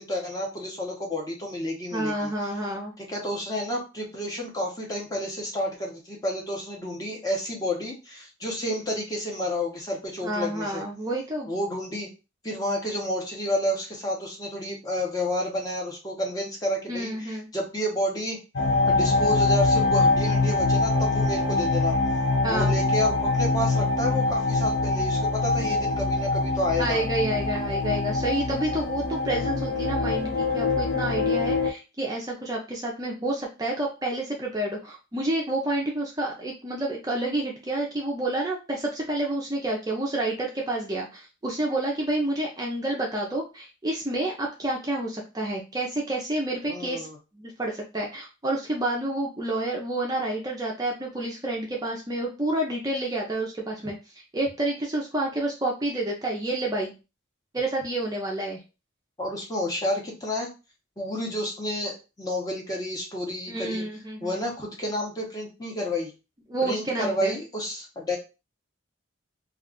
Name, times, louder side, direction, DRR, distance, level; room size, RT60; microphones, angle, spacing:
voice 1, 0.0-2.3 3.0-10.8 11.5-12.1 12.4-18.4 18.9-22.0 22.5-27.0 46.7-47.2 59.2-60.5 61.0-63.8 64.2-66.1 66.6-68.2, left 1 dB, 20° left, -1 dB, 0.7 m, -30 dB
voice 2, 1.9-2.9 10.2-11.5 16.9-17.5 22.4-22.7 26.8-47.1 47.3-53.9 54.3-56.9 57.5-58.6 63.5-64.4 66.5-67.4, right 1 dB, 20° right, -1 dB, 0.4 m, -29 dB
sound 1, 18.6-31.7, left 3 dB, 65° left, 0.5 m, -24 dB
2.3 x 2.3 x 3.6 m, 0.30 s
head